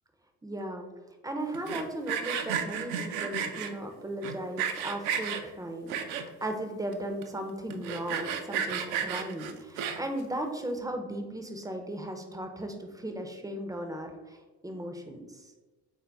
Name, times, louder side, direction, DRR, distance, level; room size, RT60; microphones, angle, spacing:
voice 1, 0.4-0.9 1.2-14.4 14.6-15.4, right 1 dB, 10° right, 5 dB, 0.5 m, -36 dB
Sawing, 1.5-3.7 4.2-5.4 5.9-6.5 6.9-7.0 7.2-7.3 7.7-10.2, right 8 dB, 65° right, 0.5 m, -32 dB
3.9 x 2.7 x 3.4 m, 1.2 s
figure-of-eight pair, 50°, 44 cm